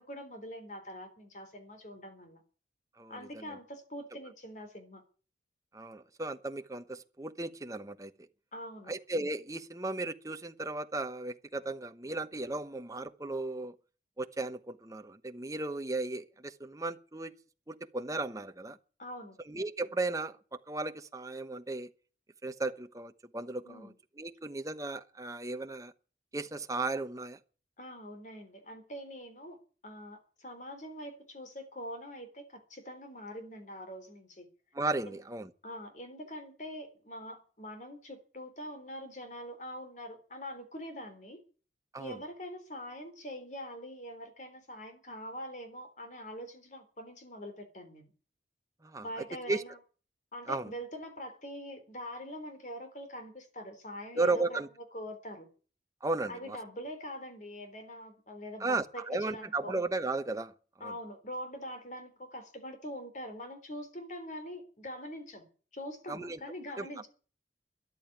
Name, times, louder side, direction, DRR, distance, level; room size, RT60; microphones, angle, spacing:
voice 1, 0.0-2.4 3.1-5.0 8.5-8.9 19.0-19.4 23.6-23.9 27.8-29.6 29.8-34.5 35.0-35.2 35.6-41.4 42.0-48.1 49.0-49.8 50.3-54.6 54.9-55.5 56.3-59.8 60.8-65.5 65.7-67.1, equal, 40° left, 3.6 m, -44 dB
voice 2, 3.0-3.5 5.7-8.1 8.9-13.7 14.2-17.3 17.7-18.8 19.5-20.4 20.7-21.9 22.4-25.9 26.3-27.4 34.7-35.5 41.9-42.2 48.8-49.6 50.5-50.7 54.1-54.7 56.0-56.6 58.6-60.5 60.8-60.9 66.1-66.4 66.8-66.9, right 3 dB, 20° right, 0.9 m, -35 dB
13.5 x 11.0 x 9.6 m
head